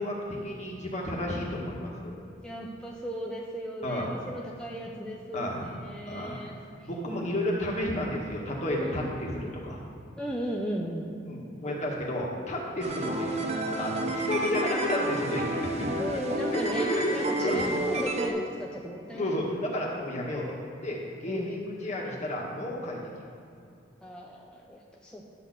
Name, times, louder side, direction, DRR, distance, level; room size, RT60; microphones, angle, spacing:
voice 1, 0.0-2.2 3.8-4.1 5.3-5.6 6.1-6.3 6.8-9.8 11.3-13.4 13.8-16.2 16.5-17.1 17.4-17.6 19.1-20.6 20.8-23.0, left 1 dB, 40° left, -2 dB, 1.8 m, -32 dB
voice 2, 2.4-6.5 6.8-6.9 8.8-9.1 10.2-11.1 16.0-19.5 21.3-21.6 24.0-25.4, equal, 5° left, -2 dB, 0.7 m, -36 dB
sound 1, 12.8-18.3, right 1 dB, 35° right, 0.9 m, -30 dB
12.0 x 4.2 x 7.7 m, 2.5 s
head